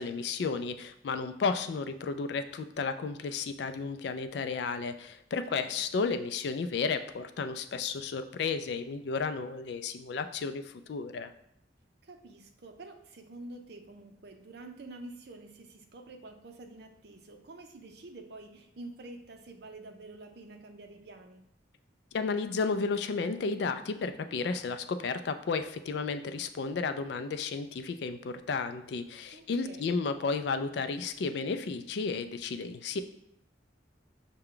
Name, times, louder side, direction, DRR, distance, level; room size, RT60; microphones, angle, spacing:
voice 1, 0.0-11.3 22.1-33.0, left 4 dB, 60° left, 10 dB, 0.3 m, -33 dB
voice 2, 5.5-5.9 12.0-21.4 29.3-29.9, right 2 dB, 60° right, 5 dB, 0.6 m, -48 dB
5.7 x 2.2 x 3.7 m, 0.77 s
head